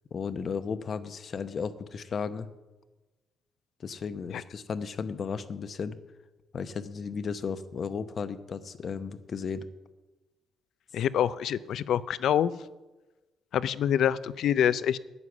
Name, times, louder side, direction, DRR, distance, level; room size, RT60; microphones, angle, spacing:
voice 1, 0.1-2.5 3.8-6.0 6.5-9.7, left 6 dB, 50° left, 12 dB, 0.8 m, -34 dB
voice 2, 10.9-12.5 13.5-15.0, left 9 dB, 70° left, 16 dB, 0.5 m, -26 dB
9.6 x 9.6 x 7.2 m, 1.1 s
cardioid pair, 90°, 0 cm